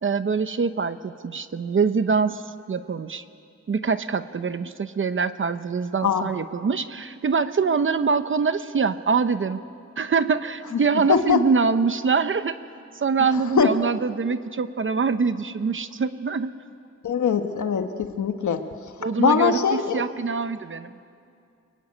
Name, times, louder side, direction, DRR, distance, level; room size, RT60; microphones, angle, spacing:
voice 1, 0.0-2.4 2.7-3.2 3.7-9.6 10.0-12.6 12.9-16.5 19.0-20.9, right 5 dB, 45° right, 11 dB, 0.8 m, -24 dB
voice 2, 11.1-11.4 13.6-13.7 17.0-18.6 19.2-20.0, left 6 dB, 85° left, 7 dB, 1.3 m, -21 dB
26.5 x 23.0 x 9.7 m, 2.4 s
wide cardioid pair, 170°, 29 cm